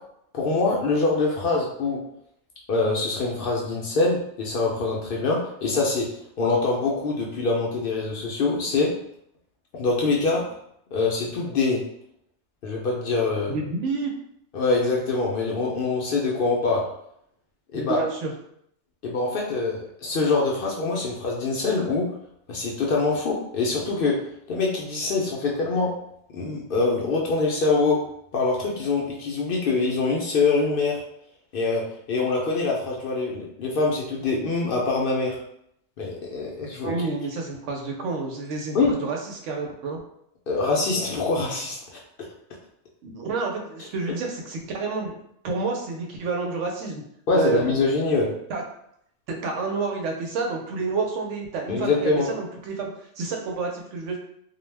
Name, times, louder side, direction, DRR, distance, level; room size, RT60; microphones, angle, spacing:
voice 1, 0.3-2.0 2.7-6.1 6.4-8.9 9.7-10.4 10.9-11.8 12.6-13.5 14.5-16.8 17.7-18.0 19.0-22.1 22.5-24.2 24.5-25.9 26.3-28.0 28.3-31.0 31.5-31.8 32.1-35.4 36.0-36.9 38.7-38.9 40.5-42.0 47.3-48.3 51.7-52.3, left 3 dB, 60° left, -2 dB, 0.6 m, -24 dB
voice 2, 13.5-14.1 17.7-18.3 36.8-40.0 43.0-45.1 45.4-47.0 47.3-47.8 48.5-48.6 49.3-52.9 53.2-54.2, right 4 dB, 85° right, 1 dB, 0.9 m, -29 dB
2.3 x 2.0 x 3.2 m, 0.72 s
omnidirectional pair, 1.2 m